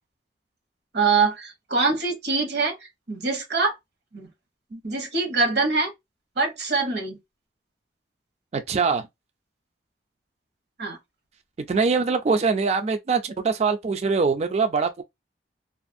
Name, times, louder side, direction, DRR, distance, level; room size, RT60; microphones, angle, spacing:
voice 1, 0.9-2.8 3.1-3.8 4.1-4.3 4.8-5.9 6.4-7.2 10.8-11.0, right 4 dB, 65° right, 0.9 m, -24 dB
voice 2, 8.5-9.1 11.7-15.0, right 4 dB, 35° right, 0.3 m, -23 dB
2.4 x 2.4 x 2.5 m
head